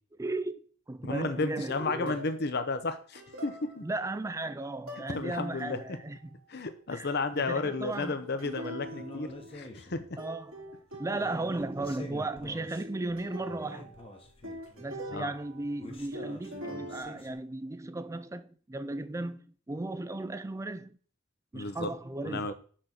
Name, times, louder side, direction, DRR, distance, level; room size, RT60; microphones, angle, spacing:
voice 1, 0.2-2.2 3.8-6.4 6.9-8.2 10.2-10.7 11.0-14.0 14.8-21.0 21.5-22.5, right 2 dB, 15° right, 0.4 m, -36 dB
voice 2, 1.0-3.8 5.1-5.8 6.5-10.2 15.1-15.3 21.5-21.9 22.2-22.5, left 3 dB, 50° left, 0.8 m, -33 dB
sound 1, 2.0-2.5 3.1-4.1 4.9-5.2 5.6-6.1 7.3-9.9 10.2-11.6 12.8-15.8 16.1-17.0, right 1 dB, 90° right, 3.1 m, -44 dB
sound 2, 8.8-10.1 10.6-10.7 11.0-13.1 13.4-15.1 15.8-17.3, left 1 dB, 25° left, 1.1 m, -46 dB
6.5 x 6.0 x 4.4 m
head